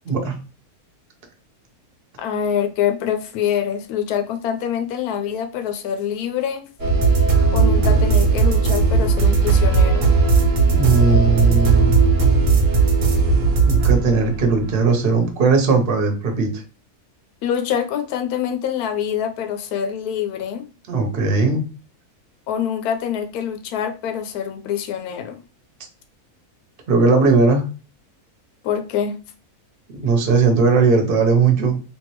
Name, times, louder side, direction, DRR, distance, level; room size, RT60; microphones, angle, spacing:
voice 1, 0.1-0.4 10.7-12.0 13.6-16.6 20.9-21.7 26.9-27.7 30.0-31.8, right 4 dB, 45° right, 0.9 m, -18 dB
voice 2, 2.2-6.7 7.5-10.1 17.4-20.7 22.5-25.4 28.6-29.2, left 9 dB, 80° left, 1.1 m, -25 dB
sound 1, 6.8-14.9, right 4 dB, 90° right, 1.4 m, -16 dB
3.5 x 2.9 x 3.0 m
omnidirectional pair, 1.6 m